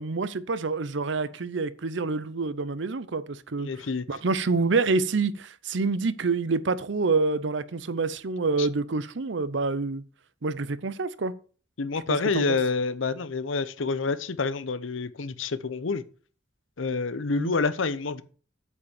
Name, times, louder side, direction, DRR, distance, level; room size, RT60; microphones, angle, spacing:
voice 1, 0.0-3.7 4.1-10.0 10.4-11.3 12.3-12.6 17.3-17.5, right 4 dB, 70° right, 0.7 m, -27 dB
voice 2, 3.6-4.0 8.6-8.7 11.8-16.0 16.8-18.2, left 4 dB, 85° left, 0.7 m, -28 dB
8.2 x 5.4 x 7.1 m
head